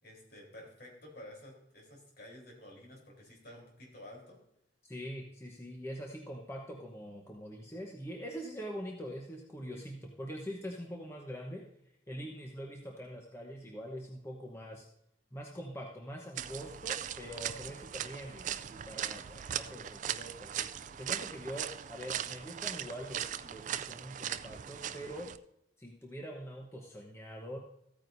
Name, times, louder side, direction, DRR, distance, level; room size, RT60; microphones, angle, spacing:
voice 1, 0.0-4.4, left 1 dB, 60° left, -1 dB, 3.7 m, -51 dB
voice 2, 4.8-11.6 12.1-14.9 15.3-20.7 21.0-25.3 25.8-27.6, equal, 15° left, 0 dB, 0.9 m, -44 dB
sound 1, 16.4-25.4, right 10 dB, 45° right, 0.3 m, -39 dB
14.5 x 9.1 x 2.7 m, 0.76 s
head